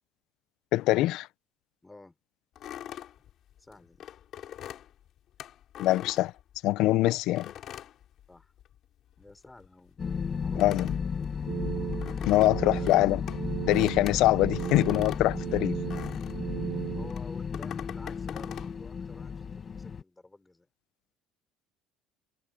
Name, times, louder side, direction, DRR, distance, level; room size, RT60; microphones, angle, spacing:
voice 1, 0.7-1.3 5.8-6.3 6.6-7.5 10.6-10.9 12.3-13.2 13.7-15.7, left 17 dB, 60° left, 0.7 m, -24 dB
voice 2, 1.8-2.2 3.6-4.1 8.3-8.5 9.2-10.0 10.3-10.6 12.6-13.1 15.4-15.6 17.0-20.7, left 2 dB, 10° left, 6.0 m, -51 dB
sound 1, 2.6-6.9 7.4-8.8 9.1-16.5 17.1-18.7, left 11 dB, 45° left, 3.3 m, -44 dB
sound 2, 10.0-20.0, left 6 dB, 25° left, 1.1 m, -34 dB
sound 3, 11.5-17.1, right 13 dB, 50° right, 0.4 m, -36 dB
cardioid pair, 155°, 0 cm